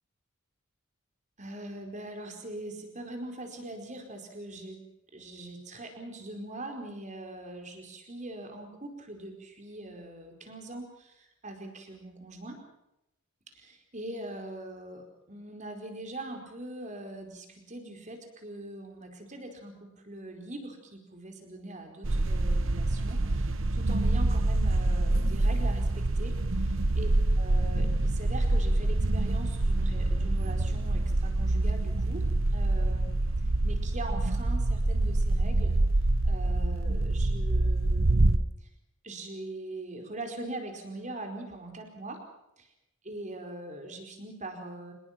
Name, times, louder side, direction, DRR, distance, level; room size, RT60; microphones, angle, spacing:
voice 1, 1.4-4.8 5.1-12.6 13.5-26.3 27.0-27.1 27.4-32.2 32.5-33.1 33.6-35.8 36.3-38.7 39.0-42.2 43.0-44.9, right 1 dB, 35° right, 4 dB, 4.7 m, -42 dB
sound 1, 22.0-38.4, right 2 dB, 65° right, 1.0 m, -26 dB
26.0 x 21.0 x 6.0 m, 0.86 s
head